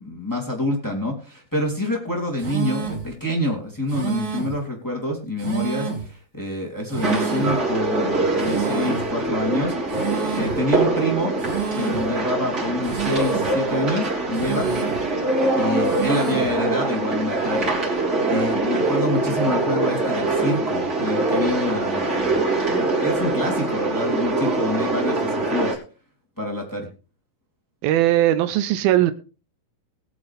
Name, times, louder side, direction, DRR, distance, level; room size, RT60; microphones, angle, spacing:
voice 1, 0.0-10.0 10.3-11.3 11.7-14.7 15.5-17.7 18.3-25.8 26.4-26.9, left 1 dB, 5° left, 0 dB, 2.6 m, -27 dB
sound 1, 2.4-3.1 3.9-4.6 5.4-6.1 6.9-7.6 8.4-9.1 9.9-10.6 11.4-12.1 12.8-13.6 14.3-15.1 15.8-16.6, right 6 dB, 50° right, 4.0 m, -29 dB
sound 2, 7.0-25.7, right 2 dB, 25° right, 4.2 m, -23 dB
voice 2, 27.8-29.1, right 13 dB, 80° right, 12 dB, 2.6 m, -19 dB
21.0 x 7.9 x 3.5 m, 0.35 s
omnidirectional pair, 4.3 m